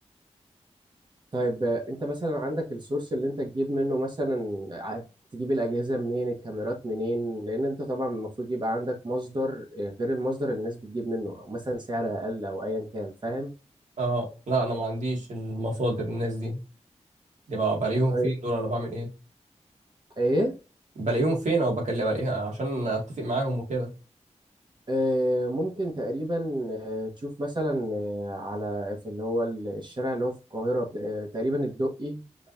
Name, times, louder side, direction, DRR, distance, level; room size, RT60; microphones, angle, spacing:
voice 1, 1.3-5.0 5.3-13.5 18.1-18.3 20.2-20.5 24.9-32.2, equal, 40° right, 1.3 m, -29 dB
voice 2, 14.0-16.6 17.5-19.1 21.0-23.9, right 2 dB, 85° right, 2.1 m, -27 dB
5.3 x 3.2 x 2.7 m
wide cardioid pair, 115°, 12 cm